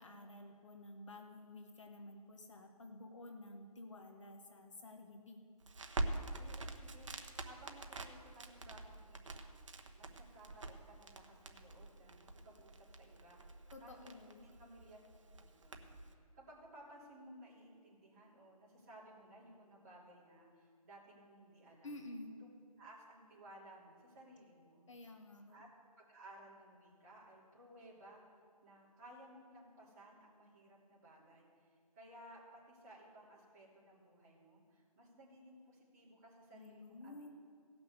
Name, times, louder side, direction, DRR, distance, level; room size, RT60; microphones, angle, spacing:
voice 1, 0.0-5.4 13.7-14.4 21.8-22.4 24.9-25.6 36.5-37.3, left 2 dB, 50° left, 4 dB, 1.1 m, -52 dB
Crackle, 5.6-16.1, right 2 dB, 50° right, 1.0 m, -46 dB
voice 2, 6.3-9.5 10.0-15.0 15.4-22.0 22.4-22.5 22.8-24.9 25.5-25.7 26.0-28.2 28.6-37.2, right 1 dB, 25° right, -7 dB, 3.1 m, -59 dB
16.5 x 6.1 x 6.7 m, 2.2 s
hypercardioid pair, 175°, 20 cm